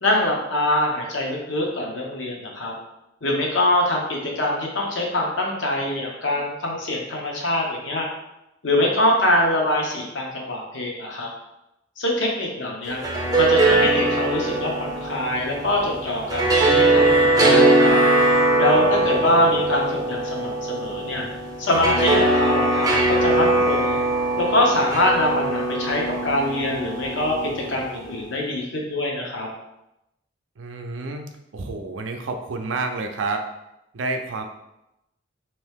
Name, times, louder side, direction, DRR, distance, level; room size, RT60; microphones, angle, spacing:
voice 1, 0.0-2.7 3.2-8.1 8.6-11.3 12.0-13.0 13.4-17.9 18.6-21.3 21.6-24.0 24.4-29.5, left 1 dB, 75° left, -1 dB, 0.8 m, -24 dB
sound 1, 12.9-28.0, right 2 dB, 20° right, 0.5 m, -21 dB
voice 2, 18.7-19.6 30.6-31.3 31.5-33.4 33.9-34.4, right 3 dB, 85° right, 4 dB, 0.5 m, -30 dB
2.9 x 2.7 x 3.4 m, 0.88 s
head